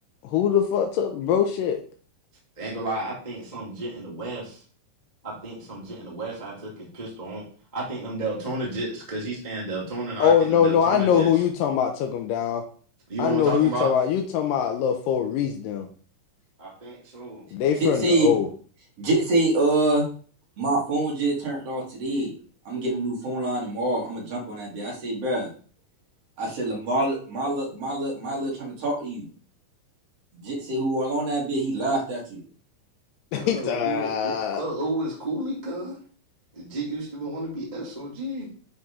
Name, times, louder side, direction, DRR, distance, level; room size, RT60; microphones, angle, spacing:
voice 1, 0.2-1.8 10.2-12.6 13.2-15.9 17.5-18.5 33.3-34.6, left 8 dB, 80° left, 3 dB, 2.3 m, -22 dB
voice 2, 2.6-4.6 5.2-7.4 7.7-11.3 13.1-13.9 16.6-17.5 33.3-36.0 36.5-38.5, right 2 dB, 15° right, -5 dB, 1.7 m, -32 dB
voice 3, 17.8-18.3 19.0-20.1 20.6-22.3 22.7-25.5 26.4-29.3 30.3-32.4, right 2 dB, 50° right, -3 dB, 2.9 m, -25 dB
10.5 x 4.2 x 3.7 m, 0.43 s
omnidirectional pair, 4.0 m